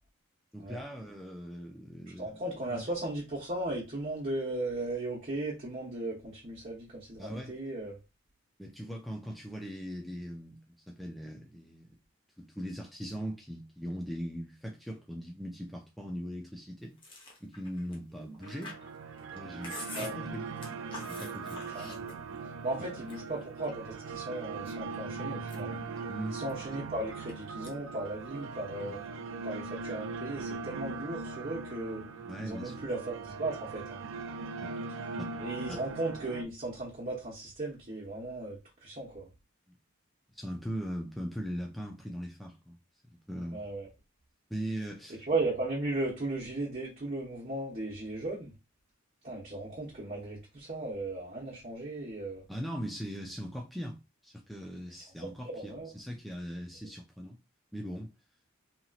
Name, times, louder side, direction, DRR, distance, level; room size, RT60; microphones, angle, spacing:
voice 1, 0.5-2.3 2.7-2.9 7.2-7.5 8.6-12.0 12.4-17.0 17.4-18.8 19.3-20.5 21.1-21.7 26.1-26.4 28.9-29.0 32.3-32.9 34.6-34.8 35.2-35.3 35.7-35.8 40.3-42.8 43.3-43.6 44.5-45.3 52.5-57.4 57.7-58.1, equal, ahead, 0.4 m, -40 dB
voice 2, 2.2-8.0 19.9-20.1 21.7-22.0 22.6-25.8 26.3-29.0 29.4-32.0 32.4-34.0 35.4-39.3 43.5-43.9 45.3-48.5 49.2-52.4 55.4-55.9, right 2 dB, 35° right, 0.9 m, -36 dB
Chewing mastication, 17.0-22.5 22.8-23.9 24.4-25.0 25.3-27.3 27.6-28.0 28.2-29.1, left 2 dB, 25° left, 0.8 m, -47 dB
sound 1, 18.4-36.4, right 4 dB, 65° right, 0.4 m, -40 dB
2.9 x 2.8 x 2.4 m
head